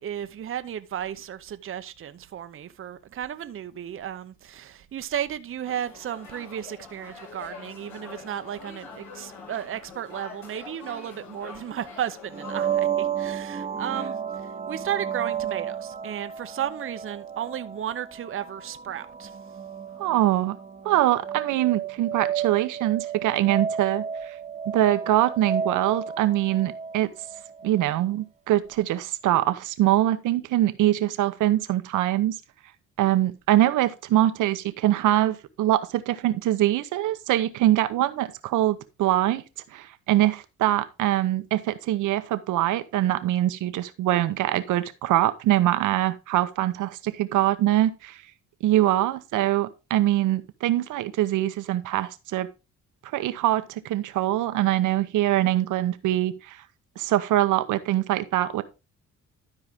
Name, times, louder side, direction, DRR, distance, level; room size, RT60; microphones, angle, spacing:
voice 1, 0.0-19.4, right 10 dB, 45° right, 0.7 m, -34 dB
sound 1, 5.6-12.8, left 4 dB, 70° left, 5.8 m, -44 dB
sound 2, 12.3-27.9, right 8 dB, 20° right, 1.0 m, -32 dB
voice 2, 20.0-20.6 20.8-24.3 24.7-27.1 27.6-32.4 33.0-39.4 39.7-48.2 48.6-52.5 53.0-56.6 57.0-58.6, right 14 dB, 85° right, 0.9 m, -23 dB
12.5 x 4.8 x 3.6 m
cardioid pair, 90°, 30 cm